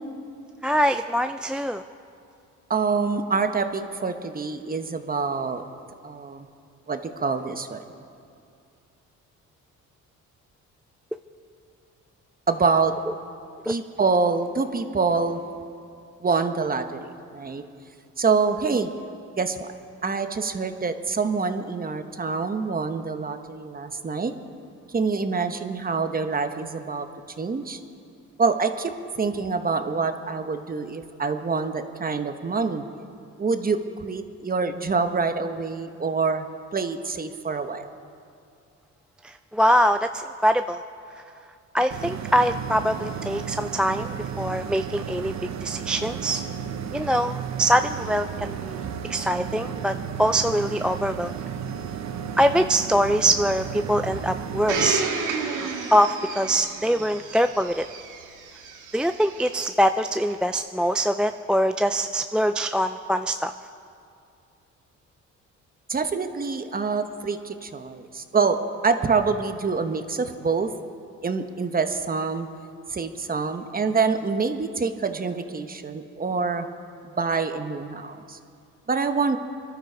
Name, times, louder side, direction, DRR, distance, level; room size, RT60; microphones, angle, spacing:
voice 1, 0.6-1.8 13.7-13.8 39.2-40.8 41.7-45.3 45.6-46.4 46.9-48.8 49.1-51.3 52.4-55.0 55.6-57.9 58.9-63.5, equal, 5° right, 8 dB, 0.3 m, -23 dB
voice 2, 2.7-5.6 6.0-6.5 6.9-7.8 12.5-12.9 13.6-15.4 16.2-17.6 18.2-18.9 19.4-19.7 20.0-24.3 24.9-27.1 27.4-27.8 28.4-32.8 33.4-36.5 36.7-37.9 65.9-68.6 68.8-70.7 71.2-72.5 72.9-76.7 77.1-78.4 78.9-79.4, right 4 dB, 30° right, 7 dB, 1.2 m, -26 dB
sound 1, 41.9-54.9, right 8 dB, 65° right, 1.0 m, -33 dB
Domestic sounds home sounds, 54.7-59.5 60.3-60.4, right 4 dB, 85° right, 1.9 m, -31 dB
25.5 x 12.0 x 4.7 m, 2.4 s
cardioid pair, 90°, 30 cm